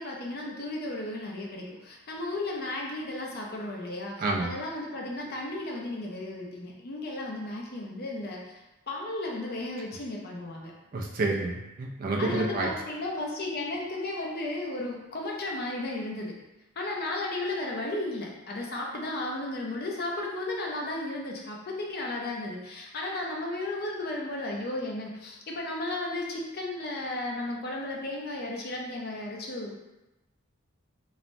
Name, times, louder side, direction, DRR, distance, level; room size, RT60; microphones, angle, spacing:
voice 1, 0.0-10.7 12.2-16.3 16.8-29.8, left 2 dB, 45° left, -1 dB, 0.5 m, -34 dB
voice 2, 4.2-4.5 10.9-12.7, right 2 dB, 40° right, -1 dB, 0.4 m, -29 dB
3.1 x 2.1 x 2.6 m, 0.98 s
head